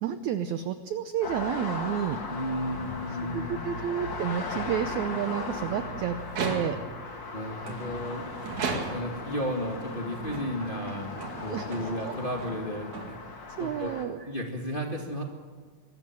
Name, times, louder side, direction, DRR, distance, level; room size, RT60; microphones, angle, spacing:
voice 1, 0.0-2.2 3.3-6.8 11.5-11.7 12.0-12.1 13.6-14.2, right 9 dB, 85° right, 10 dB, 1.6 m, -30 dB
sound 1, 1.2-14.0, left 3 dB, 35° left, 2.1 m, -38 dB
voice 2, 2.3-3.6 7.3-8.3 8.9-11.1 11.4-13.2 13.6-13.9 14.2-15.3, equal, 20° left, 1 dB, 1.3 m, -33 dB
sound 2, 6.2-7.0 7.6-9.3 10.0-13.5, right 4 dB, 55° right, 3.5 m, -37 dB
24.0 x 13.0 x 9.0 m, 1.5 s
omnidirectional pair, 4.4 m